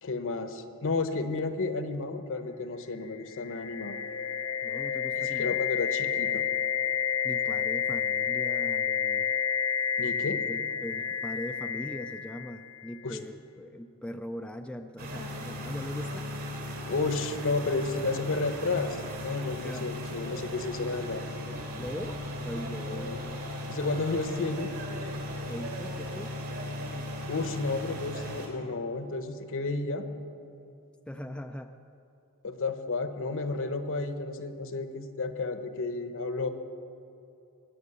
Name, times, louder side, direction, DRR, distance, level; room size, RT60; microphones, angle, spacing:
voice 1, 0.0-4.0 5.1-6.4 10.0-10.4 13.0-13.2 16.9-21.2 22.9-23.2 23.7-24.7 27.3-30.1 32.4-36.5, left 3 dB, 60° left, 9 dB, 1.0 m, -32 dB
sound 1, 3.1-13.0, left 8 dB, 85° left, 0.6 m, -30 dB
voice 2, 4.6-5.6 7.2-9.4 10.3-16.3 19.5-20.0 21.8-23.5 25.5-26.4 31.1-31.8, left 1 dB, 5° left, 5 dB, 0.4 m, -41 dB
sound 2, 15.0-28.5, left 1 dB, 65° right, 3.5 m, -37 dB
22.0 x 7.8 x 6.8 m, 2.8 s
head